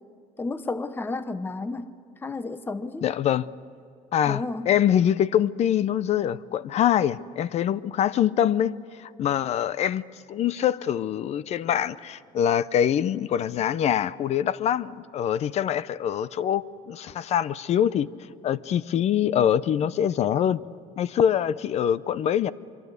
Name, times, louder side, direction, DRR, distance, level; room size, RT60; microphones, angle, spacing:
voice 1, 0.4-1.9 2.2-3.0 4.2-4.7, left 3 dB, 15° left, 0.8 m, -32 dB
voice 2, 3.0-3.5 4.1-10.0 10.3-18.1 18.4-20.6 21.0-22.5, left 10 dB, 50° left, 0.6 m, -24 dB
24.5 x 24.0 x 8.2 m
cardioid pair, 135°, 15 cm